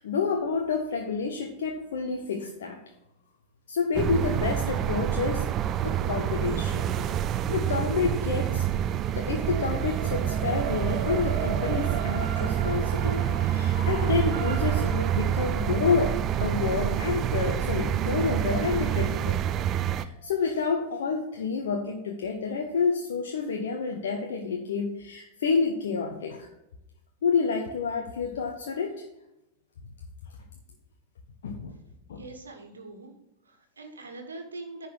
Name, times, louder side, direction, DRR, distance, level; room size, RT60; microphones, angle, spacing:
voice 1, 0.0-2.8 3.7-5.4 5.8-6.9 7.5-8.9 9.1-19.4 19.9-26.5 27.2-29.0 31.4-31.7 32.1-32.2, left 5 dB, 60° left, 2 dB, 1.0 m, -29 dB
sound 1, 3.9-20.1, right 10 dB, 30° right, 0.4 m, -27 dB
sound 2, 9.4-19.6, right 5 dB, 50° right, 2.0 m, -39 dB
voice 2, 32.2-33.1 33.4-34.9, right 3 dB, 75° right, 4 dB, 1.5 m, -42 dB
10.0 x 4.2 x 6.4 m, 0.89 s
figure-of-eight pair, 90°, 0 cm